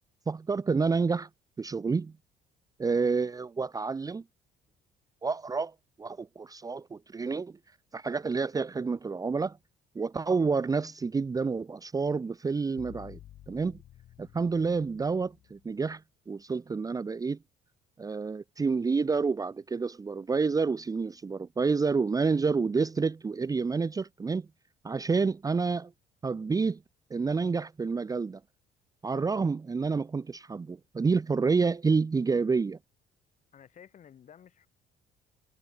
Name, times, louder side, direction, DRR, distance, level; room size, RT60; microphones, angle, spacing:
voice 1, 0.3-1.3 1.6-2.1 2.8-4.2 5.2-7.5 7.9-9.6 9.9-13.2 13.5-13.8 14.2-16.0 16.3-17.4 18.0-24.5 24.8-25.9 26.2-26.8 27.1-28.4 29.0-32.8, right 4 dB, 20° right, 0.8 m, -29 dB
sound 1, 12.8-15.8, left 12 dB, 65° left, 7.0 m, -52 dB
voice 2, 29.1-29.4 33.5-34.7, left 8 dB, 45° left, 7.0 m, -53 dB
cardioid pair, 110°, 17 cm